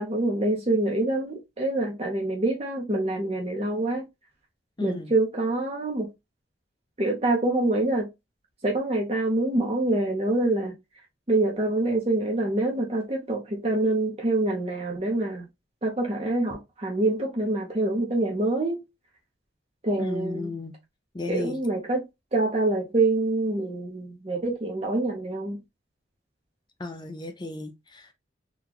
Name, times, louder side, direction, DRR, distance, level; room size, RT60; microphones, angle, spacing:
voice 1, 0.0-4.0 4.8-6.1 7.0-8.1 8.6-10.7 11.3-15.5 15.8-18.8 19.8-20.5 21.3-22.0 22.3-25.6, right 2 dB, 35° right, 0.7 m, -26 dB
voice 2, 4.8-5.1 20.0-20.8 21.1-21.6 26.8-28.1, left 2 dB, 25° left, 0.5 m, -34 dB
3.8 x 2.3 x 2.9 m
head